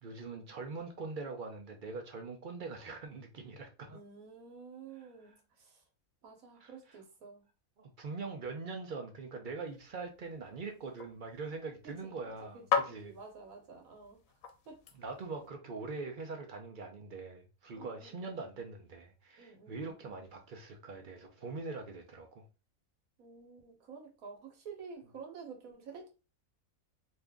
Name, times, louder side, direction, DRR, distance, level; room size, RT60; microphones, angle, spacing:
voice 1, 0.0-4.0 4.9-5.4 6.5-7.0 7.8-13.1 14.9-22.4, right 4 dB, 50° right, 0.6 m, -43 dB
voice 2, 3.9-5.7 6.2-7.4 12.0-12.1 12.4-12.6 13.0-14.2 14.7-14.8 17.7-18.5 19.4-20.1 23.2-26.1, right 5 dB, 80° right, 1.3 m, -50 dB
sound 1, 9.7-15.5, left 7 dB, 80° left, 1.0 m, -39 dB
2.7 x 2.5 x 3.4 m
omnidirectional pair, 1.5 m